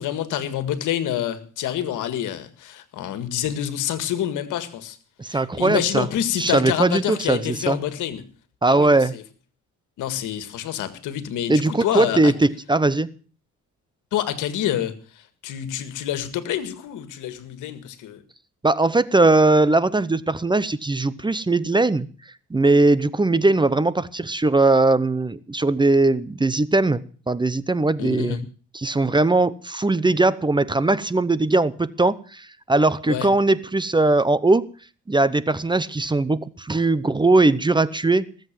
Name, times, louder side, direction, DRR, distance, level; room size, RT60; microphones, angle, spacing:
voice 1, 0.0-5.0 5.3-8.2 8.7-9.2 10.0-12.3 14.1-18.2 28.0-28.4 33.1-33.3, left 11 dB, 85° left, 12 dB, 1.8 m, -27 dB
voice 2, 5.2-6.1 6.4-7.8 8.6-9.1 11.5-13.1 18.6-22.1 22.5-28.4 28.7-34.7 35.1-38.3, right 2 dB, 15° right, 18 dB, 0.8 m, -20 dB
19.0 x 8.0 x 7.5 m, 0.40 s
cardioid pair, 90°, 30 cm